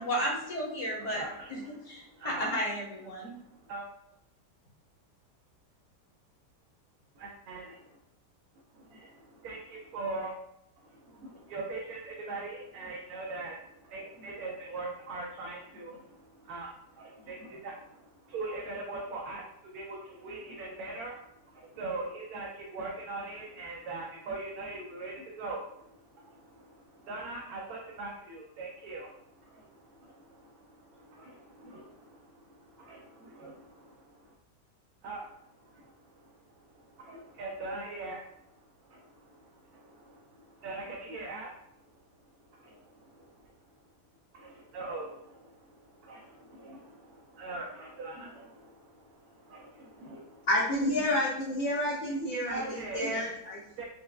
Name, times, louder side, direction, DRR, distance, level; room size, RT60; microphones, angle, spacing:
voice 1, 0.0-1.2 1.5-1.6 1.9-3.4, equal, 25° left, -5 dB, 0.8 m, -33 dB
voice 2, 1.0-1.8 2.1-2.5 3.2-3.8 7.2-8.0 8.7-10.3 10.8-19.4 19.7-21.2 21.4-34.3 35.0-38.2 38.6-41.5 42.5-43.5 44.3-50.5 52.4-53.1 53.8-53.9, right 3 dB, 70° right, -2 dB, 1.0 m, -42 dB
voice 3, 50.5-53.6, left 1 dB, 60° left, -8 dB, 1.0 m, -29 dB
4.6 x 2.1 x 2.2 m, 0.82 s
omnidirectional pair, 1.8 m